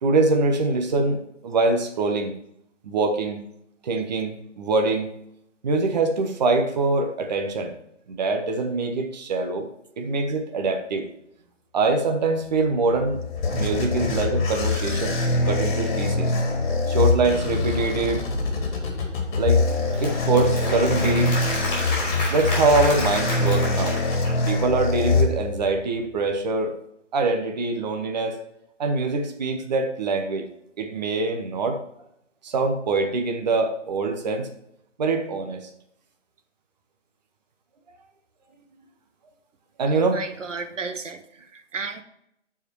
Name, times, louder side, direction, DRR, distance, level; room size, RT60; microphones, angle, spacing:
voice 1, 0.0-2.4 2.8-3.4 3.8-5.1 5.6-7.7 8.1-9.7 10.0-11.1 11.7-13.2 13.5-15.2 15.4-16.3 16.9-18.2 19.4-19.6 20.0-21.4 22.3-24.0 24.5-26.8 27.1-28.4 28.8-30.5 30.8-31.8 32.4-34.5 35.0-35.7 39.8-40.2, right 3 dB, 35° right, 4 dB, 1.1 m, -24 dB
sound 1, 12.8-25.8, left 3 dB, 40° left, 2.3 m, -24 dB
Applause / Crowd, 19.4-24.8, left 1 dB, 15° left, 3.7 m, -31 dB
voice 2, 39.9-42.0, right 4 dB, 75° right, 8 dB, 1.2 m, -34 dB
10.5 x 5.0 x 4.6 m, 0.78 s
hypercardioid pair, 160°, 37 cm